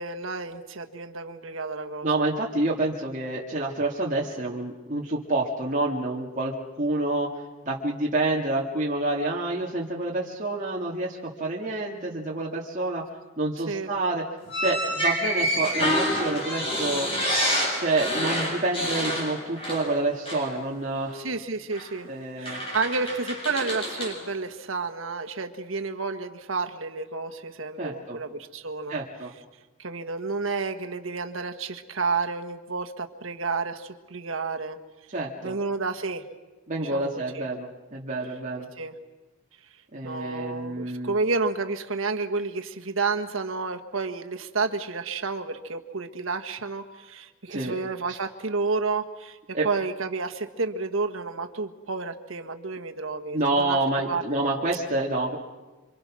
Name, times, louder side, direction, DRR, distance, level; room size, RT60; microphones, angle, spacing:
voice 1, 0.0-2.1 13.7-13.9 21.1-22.1 22.4-29.0 29.8-34.8 35.4-36.2 36.8-37.5 38.8-39.0 40.0-53.8 54.1-54.2, right 4 dB, 75° right, 5 dB, 1.6 m, -30 dB
voice 2, 2.0-7.3 7.6-13.0 13.4-14.2 14.6-17.1 17.8-21.2 22.0-22.6 27.8-28.2 28.9-29.3 35.1-35.5 36.7-38.7 39.9-41.2 47.5-47.7 49.5-49.7 53.3-55.4, right 2 dB, 40° right, -3 dB, 2.2 m, -28 dB
sound 1, 14.5-20.0 20.2-20.5 21.7-21.9 22.4-24.2, equal, 30° left, 7.5 m, -28 dB
27.5 x 26.0 x 6.3 m, 1.2 s
head